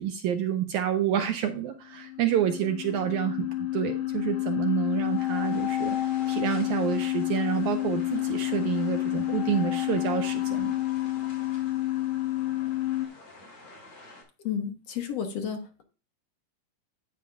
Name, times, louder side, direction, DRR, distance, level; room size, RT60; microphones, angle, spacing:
voice 1, 0.0-6.0 6.3-10.8, right 10 dB, 85° right, 7 dB, 1.7 m, -28 dB
sound 1, 1.8-13.1, left 15 dB, 75° left, 1.7 m, -29 dB
sound 2, 4.8-14.2, left 2 dB, 30° left, 3.6 m, -49 dB
voice 2, 14.4-15.8, left 8 dB, 60° left, 4 dB, 1.9 m, -32 dB
10.5 x 8.5 x 2.4 m, 0.33 s
omnidirectional pair, 4.1 m